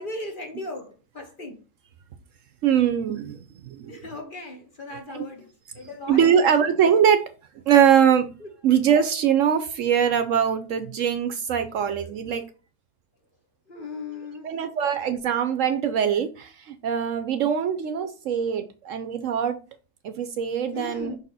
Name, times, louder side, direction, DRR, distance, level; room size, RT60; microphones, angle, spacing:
voice 1, 0.0-1.6 3.9-6.7 8.4-8.5 13.7-14.6 20.7-21.2, left 2 dB, 40° left, 1.1 m, -37 dB
voice 2, 2.6-3.4 3.7-3.9 5.1-5.2 6.1-7.2 7.7-8.3 8.6-12.4 14.4-19.6 20.0-21.1, right 8 dB, 65° right, 0.9 m, -22 dB
5.9 x 4.1 x 4.1 m
omnidirectional pair, 1.6 m